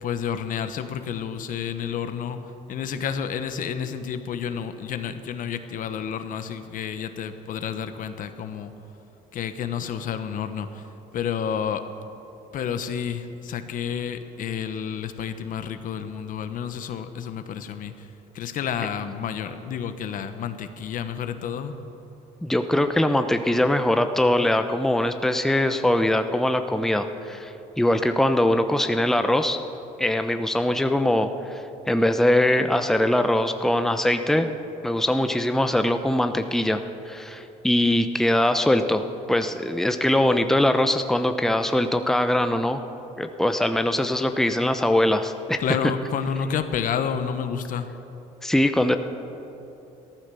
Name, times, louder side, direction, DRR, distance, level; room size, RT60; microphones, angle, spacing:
voice 1, 0.0-2.4 2.7-8.7 9.3-10.8 11.1-11.8 12.5-18.1 18.3-21.7 45.6-47.9, left 7 dB, 60° left, 9 dB, 1.1 m, -30 dB
voice 2, 22.4-29.6 30.0-34.5 34.8-42.8 43.2-45.6 48.4-49.0, left 1 dB, 5° left, 8 dB, 0.8 m, -22 dB
14.5 x 13.5 x 6.9 m, 3.0 s
supercardioid pair, 85°, 16 cm